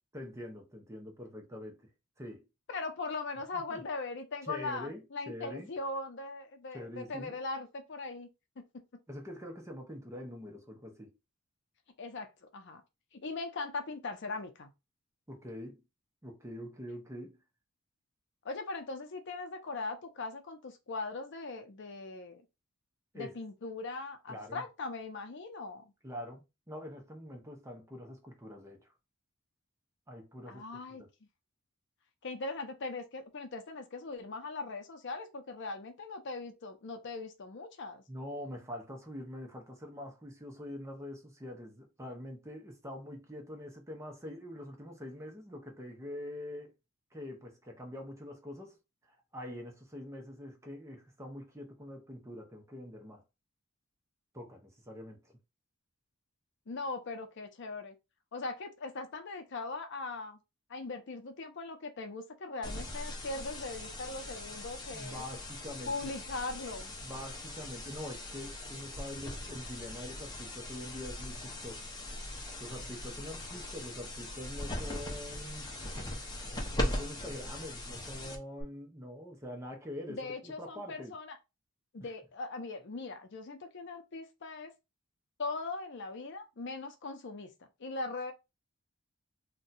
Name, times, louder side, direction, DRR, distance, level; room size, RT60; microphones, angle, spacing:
voice 1, 0.1-1.9 2.2-2.5 3.5-3.8 4.4-5.7 6.7-7.4 9.1-11.1 15.3-15.8 16.2-17.4 23.1-23.4 24.3-24.6 26.0-28.9 30.1-31.1 38.1-46.7 47.1-48.8 49.0-53.2 54.3-55.4 64.9-66.1 67.0-71.9 72.6-75.7 76.8-81.2 82.0-82.1, left 1 dB, 15° right, 0.7 m, -45 dB
voice 2, 2.7-8.3 8.6-8.7 12.0-12.8 13.1-14.7 18.4-22.4 23.1-25.8 30.5-31.0 32.2-38.0 56.7-57.9 58.3-60.4 60.7-65.2 65.9-66.9 80.1-81.4 81.9-84.7 85.4-87.5 87.8-88.3, left 3 dB, 60° left, 0.6 m, -40 dB
sound 1, 62.6-78.6, left 1 dB, 20° left, 0.7 m, -40 dB
2.7 x 2.2 x 4.0 m
head